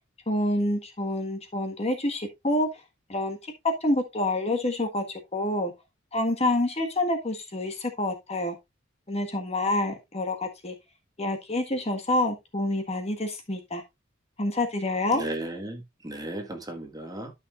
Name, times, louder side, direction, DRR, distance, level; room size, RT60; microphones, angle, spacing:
voice 1, 0.3-2.7 3.1-5.7 6.1-8.6 9.1-10.7 11.2-13.8 14.4-15.2, left 1 dB, 35° left, 1.6 m, -27 dB
voice 2, 15.1-17.3, right 1 dB, 20° right, 1.6 m, -35 dB
12.5 x 5.7 x 2.5 m
head